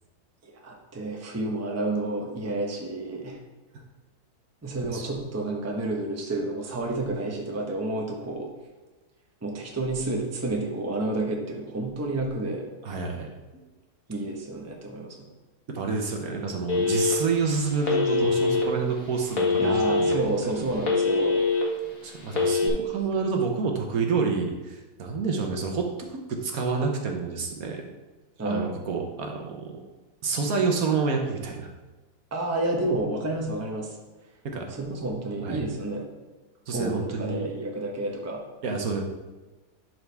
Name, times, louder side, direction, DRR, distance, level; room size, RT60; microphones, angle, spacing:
voice 1, 0.4-3.4 4.6-8.5 9.4-12.7 14.1-15.3 19.6-21.4 28.4-28.8 32.3-33.9 34.7-36.0 36.7-38.4, right 2 dB, 10° right, 0 dB, 0.8 m, -30 dB
voice 2, 12.8-13.3 15.7-20.2 20.6-20.7 22.0-27.9 28.4-29.8 30.2-31.7 34.4-34.7 35.4-35.6 36.7-37.5 38.6-39.0, right 4 dB, 65° right, 2 dB, 1.3 m, -28 dB
Telephone, 16.7-17.4 17.8-18.6 19.3-20.1 20.6-21.6 22.3-22.7, left 4 dB, 60° left, 1.8 m, -23 dB
11.0 x 4.7 x 3.4 m, 1.2 s
omnidirectional pair, 1.7 m